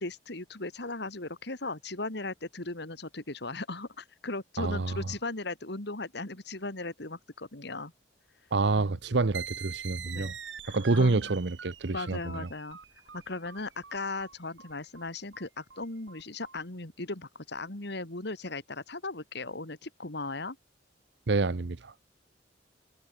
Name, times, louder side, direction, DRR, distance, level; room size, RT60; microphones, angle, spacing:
voice 1, 0.0-7.9 10.0-10.3 10.6-11.3 11.9-12.8 13.1-20.6, left 2 dB, 65° left, 2.9 m, -37 dB
voice 2, 4.6-5.0 8.5-10.3 10.7-12.5 21.3-21.9, right 3 dB, 65° right, 0.8 m, -28 dB
sound 1, 9.3-16.6, right 8 dB, 85° right, 4.3 m, -44 dB
head